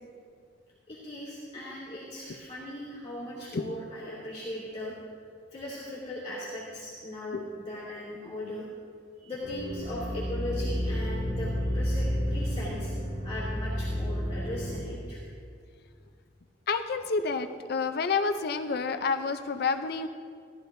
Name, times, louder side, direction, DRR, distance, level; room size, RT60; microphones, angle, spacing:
voice 1, 0.9-4.9 5.5-8.7 9.2-12.9 13.2-15.2, left 1 dB, 30° left, -8 dB, 2.3 m, -38 dB
sound 1, 9.4-14.8, equal, 85° right, 2.1 m, -31 dB
voice 2, 16.7-20.1, left 4 dB, 55° left, 8 dB, 0.5 m, -29 dB
16.5 x 12.5 x 2.6 m, 2.2 s
head